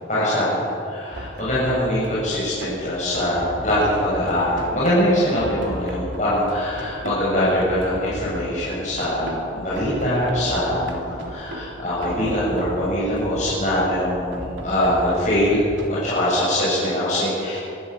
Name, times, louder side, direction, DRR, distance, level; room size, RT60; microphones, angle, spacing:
voice 1, 0.1-17.6, equal, 40° left, -9 dB, 7.9 m, -22 dB
sound 1, 1.1-15.9, right 1 dB, 90° right, 3.4 m, -35 dB
24.0 x 15.0 x 8.7 m, 2.5 s
head